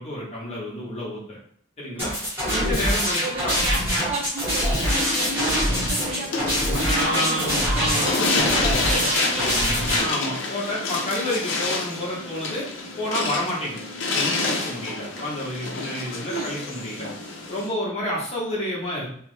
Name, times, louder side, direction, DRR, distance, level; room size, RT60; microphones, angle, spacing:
voice 1, 0.0-1.4 1.8-2.1 2.5-3.5 6.8-9.1 10.0-12.7 13.0-13.8 14.1-17.1 17.5-19.1, left 1 dB, 30° left, -5 dB, 0.9 m, -30 dB
sound 1, 2.0-10.0, equal, 10° right, 1.0 m, -24 dB
voice 2, 3.2-10.1 16.3-16.6, right 2 dB, 30° right, -1 dB, 0.5 m, -33 dB
sound 2, 4.7-17.7, left 3 dB, 60° left, 0.6 m, -29 dB
3.2 x 2.0 x 3.1 m, 0.63 s
head